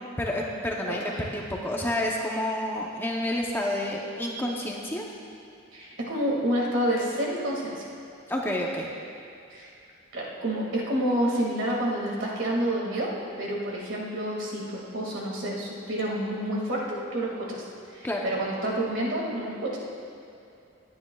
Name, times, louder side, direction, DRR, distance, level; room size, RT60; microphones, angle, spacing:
voice 1, 0.2-5.1 8.3-8.9 18.0-18.3, left 1 dB, 10° left, -1 dB, 0.7 m, -29 dB
voice 2, 5.7-7.9 9.5-9.7 10.1-13.1 13.4-17.6 17.9-19.8, right 1 dB, 65° right, -3 dB, 2.0 m, -29 dB
19.5 x 9.6 x 2.3 m, 2.6 s
head